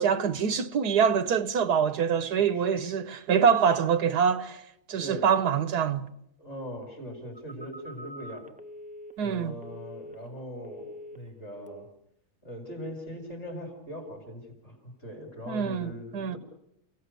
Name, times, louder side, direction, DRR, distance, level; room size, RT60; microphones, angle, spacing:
voice 1, 0.0-4.6 4.9-6.0 9.2-9.5 15.5-16.4, right 7 dB, 75° right, 1.6 m, -25 dB
voice 2, 2.2-2.9 5.0-5.2 6.4-8.5 9.2-11.9 12.4-16.4, equal, 40° left, 5.7 m, -41 dB
Telephone, 7.3-10.4 10.6-11.3 11.7-12.0, equal, 10° right, 0.5 m, -46 dB
29.0 x 17.5 x 6.8 m
omnidirectional pair, 1.7 m